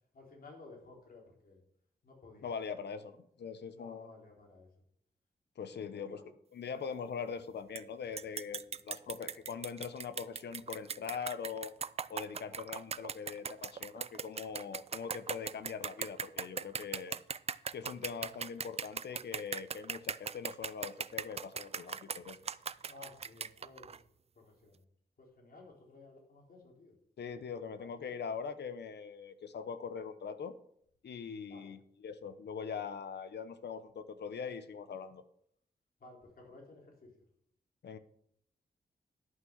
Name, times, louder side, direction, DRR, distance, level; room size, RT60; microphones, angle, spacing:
voice 1, 0.1-1.6 2.0-2.5 3.7-4.7 5.8-6.3 22.8-24.0 24.3-24.8 25.2-26.9 27.3-28.1 31.5-31.8 36.0-37.1, left 3 dB, 55° left, -2 dB, 4.0 m, -55 dB
voice 2, 2.4-4.1 5.6-6.2 6.5-11.7 12.1-17.2 17.7-22.4 27.2-30.5 31.0-35.2 37.8-38.0, left 6 dB, 75° left, 11 dB, 0.9 m, -42 dB
sound 1, 7.8-7.9 8.2-24.0, right 6 dB, 35° right, 0.4 m, -39 dB
11.5 x 5.7 x 6.4 m, 0.69 s
wide cardioid pair, 105°, 17 cm